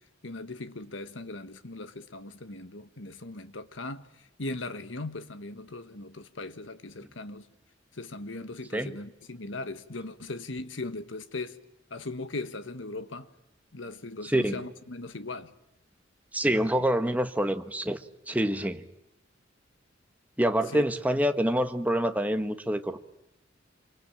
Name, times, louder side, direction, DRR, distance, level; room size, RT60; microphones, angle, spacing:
voice 1, 0.2-7.5 7.9-11.6 11.9-13.3 13.7-15.5 20.7-20.8, left 2 dB, 85° left, 1.4 m, -39 dB
voice 2, 14.2-14.6 16.3-18.0 18.3-18.8 20.4-23.0, equal, 10° right, 1.3 m, -26 dB
26.5 x 24.5 x 8.9 m
head